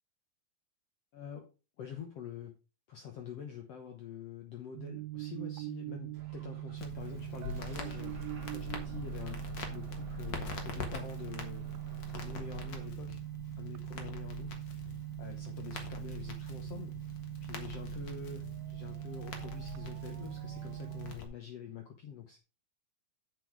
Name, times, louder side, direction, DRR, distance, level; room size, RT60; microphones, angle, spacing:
voice 1, 1.1-1.5 1.8-2.5 2.9-9.4 9.7-11.7 12.1-13.2 13.6-17.0 17.4-22.4, left 8 dB, 65° left, 4 dB, 1.6 m, -46 dB
sound 1, 4.7-21.1, right 18 dB, 80° right, 2.3 m, -42 dB
Bus / Engine starting, 6.1-12.9, right 7 dB, 45° right, 1.4 m, -51 dB
Crackle, 6.8-21.2, left 5 dB, 50° left, 1.3 m, -44 dB
8.0 x 6.9 x 4.7 m, 0.30 s
omnidirectional pair, 4.2 m